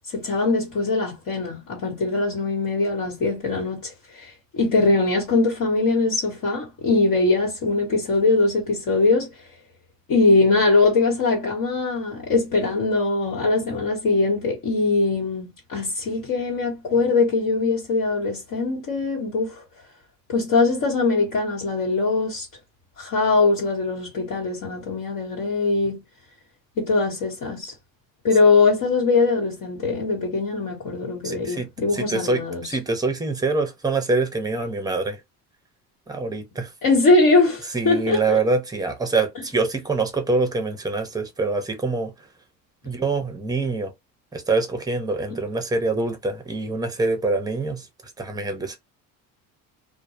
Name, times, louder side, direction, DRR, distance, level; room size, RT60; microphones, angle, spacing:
voice 1, 0.1-9.3 10.1-19.6 20.3-22.5 23.0-26.0 26.8-27.7 28.2-32.8 36.8-38.4, left 3 dB, 55° left, 1.3 m, -21 dB
voice 2, 31.2-31.7 31.9-35.2 36.1-36.7 37.7-42.1 42.8-43.9 44.3-47.9 48.2-48.8, right 3 dB, 10° right, 0.7 m, -25 dB
2.2 x 2.1 x 2.9 m
supercardioid pair, 100°, 38 cm